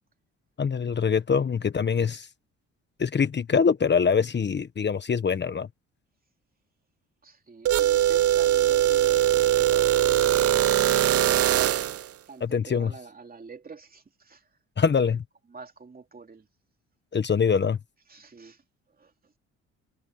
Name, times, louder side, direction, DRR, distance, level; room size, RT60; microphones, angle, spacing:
voice 1, 0.6-2.3 3.0-5.7 12.4-12.9 14.8-15.2 17.1-17.8, left 6 dB, 35° left, 1.2 m, -24 dB
voice 2, 7.2-11.7 12.3-14.4 15.1-15.2 15.4-16.5 18.1-18.6 19.0-19.1, right 4 dB, 30° right, 2.9 m, -46 dB
sound 1, 7.7-12.1, right 12 dB, 50° right, 0.6 m, -21 dB
cardioid pair, 90°, 30 cm